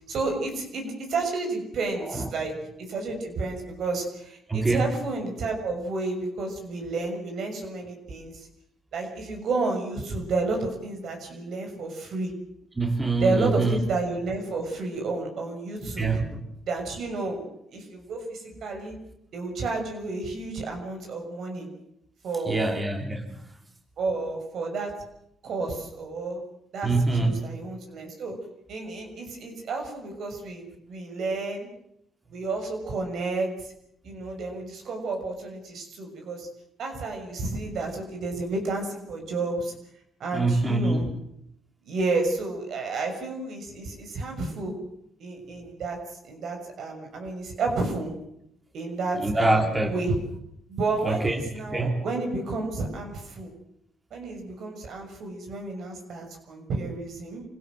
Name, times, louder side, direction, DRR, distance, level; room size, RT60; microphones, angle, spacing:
voice 1, 0.1-2.5 2.9-8.5 8.9-12.3 13.2-16.2 16.6-17.4 17.7-18.9 19.3-21.7 22.2-22.8 24.0-24.9 25.4-26.4 26.7-28.4 28.7-31.7 32.3-33.7 34.0-36.5 36.8-39.7 40.2-41.1 41.8-44.7 45.2-48.1 48.7-50.2 50.7-53.5 54.1-57.4, right 3 dB, 65° right, 3 dB, 6.5 m, -31 dB
voice 2, 4.5-4.9 12.8-13.8 15.8-16.2 22.5-23.4 26.8-27.3 40.3-41.1 49.2-49.9 51.0-51.4 51.7-52.0, right 2 dB, 20° right, 3 dB, 3.2 m, -24 dB
26.0 x 16.5 x 7.7 m, 0.76 s
cardioid pair, 90°, 0 cm